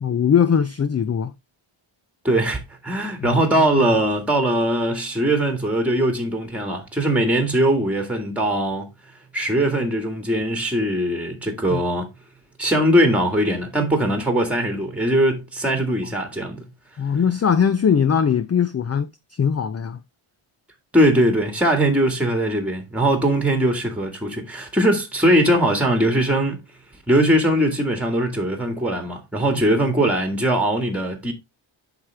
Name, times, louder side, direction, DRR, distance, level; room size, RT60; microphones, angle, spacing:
voice 1, 0.0-1.3 3.2-3.7 11.7-11.8 17.0-20.0 29.7-29.9, left 7 dB, 30° left, 0.5 m, -21 dB
voice 2, 2.2-8.9 9.3-12.1 12.6-16.7 20.9-26.6 27.1-31.3, right 1 dB, 5° right, 1.8 m, -20 dB
8.0 x 5.8 x 3.4 m
wide cardioid pair, 125°, 50 cm